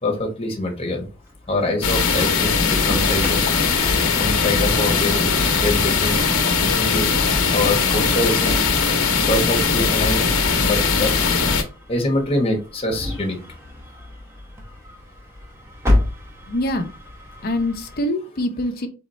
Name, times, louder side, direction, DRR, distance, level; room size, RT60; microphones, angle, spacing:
voice 1, 0.0-1.1 1.5-3.5 4.2-6.2 6.6-7.1 7.5-8.7 9.3-10.3 10.6-11.2 11.9-13.4, left 1 dB, 25° left, 2 dB, 1.1 m, -24 dB
Engine starting, 1.0-18.0, left 1 dB, 10° right, 0.9 m, -32 dB
sound 1, 1.8-11.6, left 5 dB, 90° left, 0.8 m, -19 dB
voice 2, 16.5-16.9 17.4-18.9, left 1 dB, 45° left, 5 dB, 0.7 m, -24 dB
4.1 x 3.6 x 3.1 m, 0.32 s
head